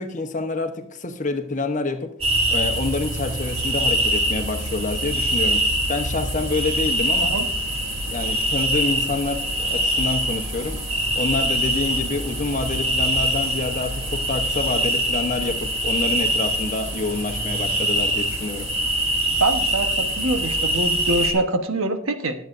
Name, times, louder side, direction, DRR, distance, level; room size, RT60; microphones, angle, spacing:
voice 1, 0.0-2.2 2.5-7.4 8.1-10.8 11.1-18.7, left 3 dB, 35° left, 0.9 m, -27 dB
sound 1, 2.2-21.3, right 1 dB, 30° right, 2.2 m, -24 dB
voice 2, 19.4-22.4, right 2 dB, 90° right, 1.1 m, -24 dB
20.5 x 7.9 x 2.6 m
head